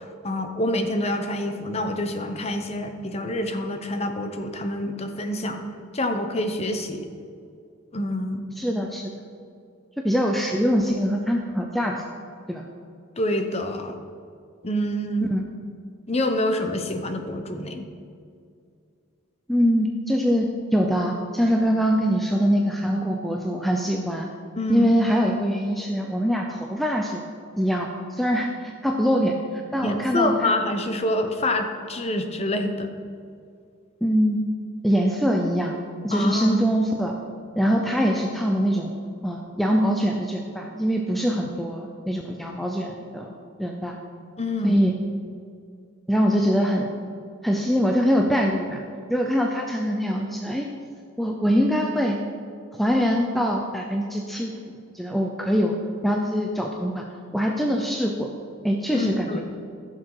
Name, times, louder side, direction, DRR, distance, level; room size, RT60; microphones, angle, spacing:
voice 1, 0.0-5.6 5.9-7.1 7.9-8.4 13.2-14.0 14.6-15.3 16.1-17.9 24.6-24.9 29.8-32.9 36.1-36.5 44.4-44.9 58.9-59.4, left 1 dB, 30° left, 6 dB, 0.8 m, -26 dB
voice 2, 8.6-9.0 10.0-12.0 12.5-12.6 15.3-15.4 19.5-24.3 24.7-27.2 27.6-29.4 29.7-30.5 34.0-34.4 34.8-35.8 36.0-37.2 37.6-38.9 39.2-43.3 43.6-44.0 44.6-44.9 46.1-46.9 47.4-48.8 49.1-50.7 51.2-52.2 52.7-54.5 54.9-55.8 56.0-57.0 57.3-58.3 58.6-59.4, equal, ahead, 1 dB, 0.6 m, -23 dB
15.0 x 6.6 x 4.8 m, 2.3 s
head